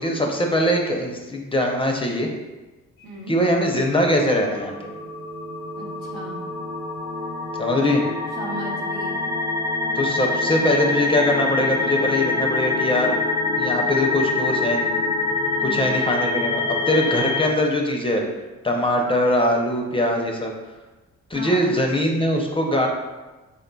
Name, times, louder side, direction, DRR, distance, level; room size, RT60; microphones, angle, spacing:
voice 1, 0.0-2.3 3.3-4.9 7.6-8.0 9.9-13.2 13.6-14.9 15.6-18.2 18.6-20.5 21.3-22.9, left 1 dB, 20° left, 1 dB, 0.5 m, -22 dB
voice 2, 3.0-3.4 5.8-6.4 8.4-9.2 15.6-16.0 21.3-21.8, right 1 dB, 85° right, -2 dB, 0.9 m, -35 dB
sound 1, 4.2-17.5, left 3 dB, 70° left, 0.6 m, -25 dB
3.8 x 3.6 x 2.2 m, 1.2 s
cardioid pair, 90°, 30 cm